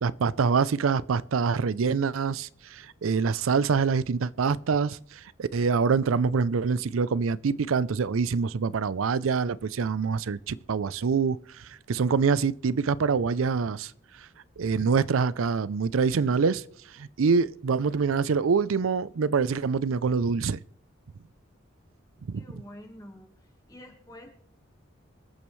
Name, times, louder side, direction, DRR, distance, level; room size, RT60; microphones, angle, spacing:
voice 1, 0.0-13.9 14.6-16.6 16.9-20.6 22.3-22.6, right 5 dB, 90° right, 0.5 m, -25 dB
voice 2, 22.3-23.3 23.7-24.3, left 1 dB, 15° left, 1.6 m, -47 dB
25.5 x 8.8 x 3.2 m
head